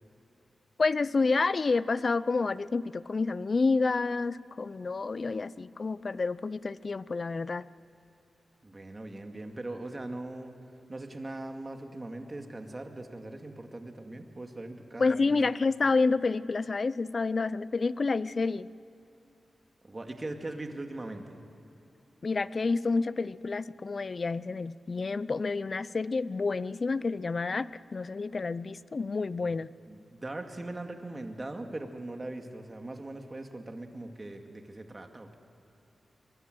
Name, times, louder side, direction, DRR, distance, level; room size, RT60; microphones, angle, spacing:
voice 1, 0.8-7.6 15.0-18.7 22.2-29.7, left 4 dB, 45° left, 18 dB, 0.5 m, -29 dB
voice 2, 8.6-10.5 10.9-15.4 19.8-21.4 29.9-35.3, right 2 dB, 25° right, 4 dB, 2.3 m, -40 dB
23.0 x 22.5 x 7.9 m, 2.9 s
wide cardioid pair, 90°, 0 cm